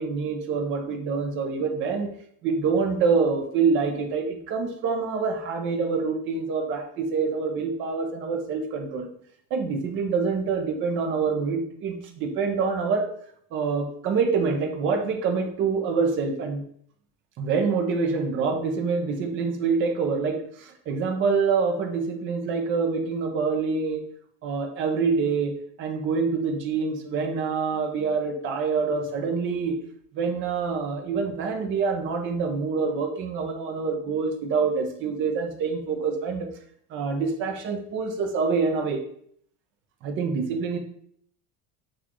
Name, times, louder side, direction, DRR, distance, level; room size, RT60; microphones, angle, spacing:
voice 1, 0.0-2.1 2.4-9.1 9.5-13.1 13.5-16.6 17.4-24.1 24.4-29.8 30.1-36.5 36.9-39.0 40.0-40.8, right 5 dB, 35° right, 3 dB, 0.6 m, -26 dB
6.0 x 2.5 x 2.9 m, 0.64 s
cardioid pair, 165°, 33 cm